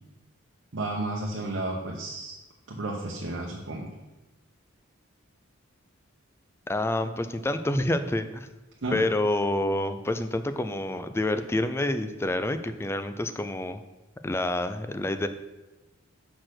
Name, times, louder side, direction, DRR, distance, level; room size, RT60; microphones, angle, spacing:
voice 1, 0.7-2.3 2.7-3.9 8.8-9.0, right 2 dB, 65° right, -2 dB, 0.9 m, -32 dB
voice 2, 6.7-8.5 8.9-13.8 14.2-15.3, left 1 dB, 10° left, 10 dB, 0.3 m, -28 dB
6.0 x 4.3 x 6.4 m, 1.1 s
head